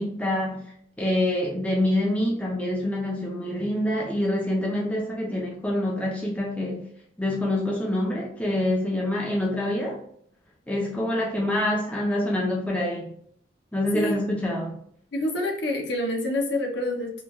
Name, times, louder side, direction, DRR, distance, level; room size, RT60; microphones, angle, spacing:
voice 1, 0.0-6.9 7.2-10.0 10.7-13.1 13.7-14.8, left 1 dB, 10° left, -2 dB, 0.4 m, -26 dB
voice 2, 15.1-17.2, left 1 dB, 65° left, 2 dB, 0.6 m, -27 dB
3.0 x 2.2 x 2.2 m, 0.64 s
head